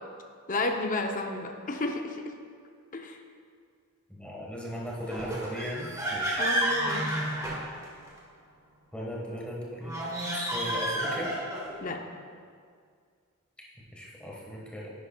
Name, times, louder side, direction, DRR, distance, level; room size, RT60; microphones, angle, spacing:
voice 1, 0.5-2.2 2.9-3.2 6.4-7.1 11.8-12.0, left 2 dB, 35° left, 4 dB, 0.6 m, -31 dB
voice 2, 4.1-6.5 8.9-10.0 10.3-11.3 13.9-14.9, equal, 5° left, -4 dB, 1.3 m, -37 dB
sound 1, 5.1-8.2 9.8-11.8, right 1 dB, 15° right, 1.2 m, -31 dB
10.0 x 9.4 x 2.3 m, 2.1 s
head